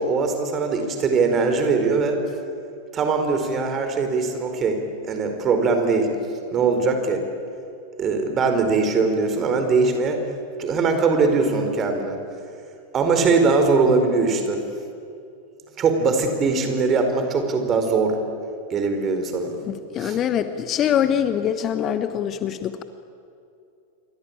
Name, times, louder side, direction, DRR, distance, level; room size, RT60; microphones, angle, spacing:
voice 1, 0.0-2.2 2.9-6.1 6.5-7.2 8.0-10.2 10.6-12.2 12.9-14.6 15.8-18.2 18.7-19.5 20.0-20.2, right 4 dB, 25° right, 6 dB, 4.5 m, -21 dB
voice 2, 19.7-22.8, left 9 dB, 30° left, 11 dB, 1.2 m, -24 dB
28.0 x 24.0 x 8.8 m, 2.5 s
figure-of-eight pair, 90°, 0 cm